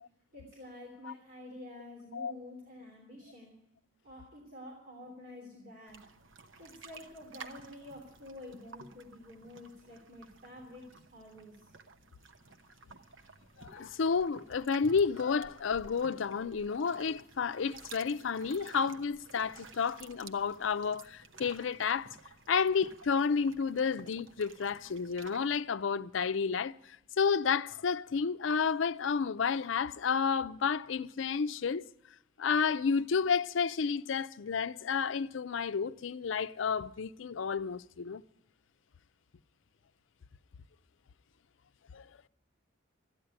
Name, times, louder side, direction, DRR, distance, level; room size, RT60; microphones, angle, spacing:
voice 1, 0.3-3.5 4.0-6.1 6.6-11.7, left 1 dB, 45° right, 3.2 m, -49 dB
sound 1, 5.9-25.6, right 4 dB, 80° right, 1.0 m, -54 dB
voice 2, 13.6-22.2 22.5-31.9 32.4-38.2 41.9-42.3, left 5 dB, 75° left, 0.5 m, -31 dB
13.5 x 10.0 x 8.9 m
head